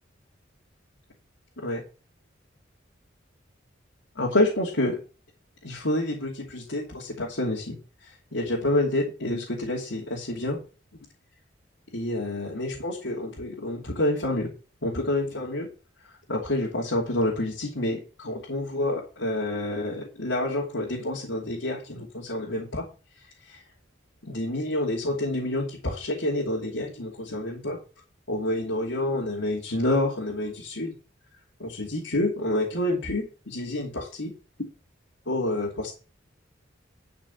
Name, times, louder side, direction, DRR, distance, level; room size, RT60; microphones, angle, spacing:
voice 1, 4.2-5.0 5.6-7.8 8.3-10.6 11.9-14.5 14.8-15.7 16.3-22.9 23.5-23.6 24.2-27.8 28.3-30.9 31.6-34.3 35.3-35.9, left 1 dB, 85° left, -3 dB, 2.9 m, -28 dB
12.0 x 5.3 x 7.1 m, 0.34 s
head